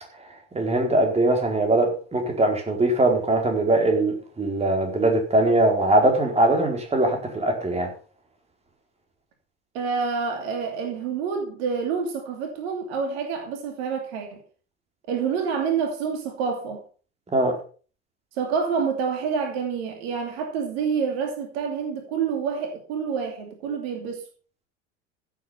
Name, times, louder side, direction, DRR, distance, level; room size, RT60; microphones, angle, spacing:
voice 1, 0.5-7.9 17.3-17.6, right 2 dB, 15° right, 4.3 m, -21 dB
voice 2, 9.7-14.4 15.1-16.8 18.3-24.2, right 6 dB, 55° right, 2.8 m, -27 dB
16.0 x 7.6 x 5.6 m
figure-of-eight pair, 75°, 36 cm